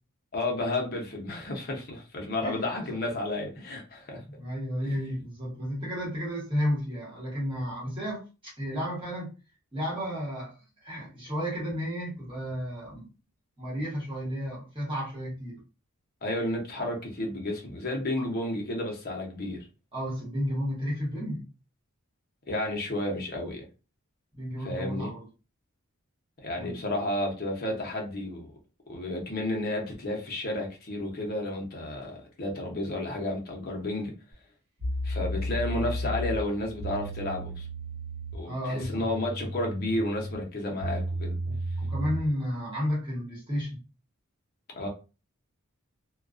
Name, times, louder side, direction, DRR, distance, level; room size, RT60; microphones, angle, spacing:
voice 1, 0.3-4.2 4.8-4.9 16.2-19.6 22.5-23.7 24.6-25.1 26.4-28.5 28.9-34.1 35.0-37.7 38.3-41.4 44.8-44.9, left 1 dB, 45° left, 0.7 m, -32 dB
voice 2, 2.4-3.0 4.2-9.3 9.7-10.6 10.8-13.1 13.6-15.6 18.2-18.3 19.9-21.5 24.3-25.2 26.5-26.8 38.4-39.1 41.4-43.8, equal, 25° right, 1.1 m, -32 dB
sound 1, 34.3-34.4 34.8-42.3, equal, 70° right, 1.1 m, -34 dB
2.3 x 2.2 x 2.4 m
head